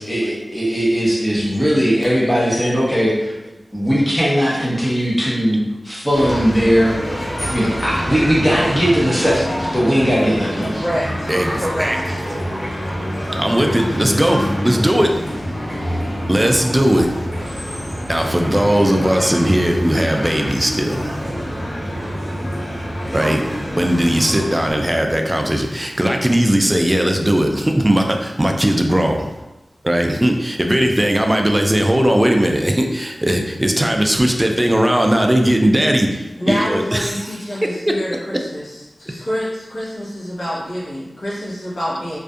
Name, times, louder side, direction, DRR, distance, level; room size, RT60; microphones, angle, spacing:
voice 1, 0.0-3.3 3.7-7.0 7.5-10.8, equal, 10° left, -6 dB, 0.9 m, -18 dB
sound 1, 6.1-24.7, equal, 35° left, 1.3 m, -26 dB
voice 2, 10.8-12.2 36.4-42.2, equal, 85° left, -8 dB, 1.0 m, -26 dB
voice 3, 11.3-12.1 12.9-13.0 13.3-15.1 16.3-17.1 18.1-21.2 23.1-23.5 23.8-29.3 29.8-37.3 37.6-37.9, right 1 dB, 20° right, 3 dB, 0.3 m, -18 dB
2.5 x 2.3 x 2.4 m, 1.0 s
wide cardioid pair, 60°, 0 cm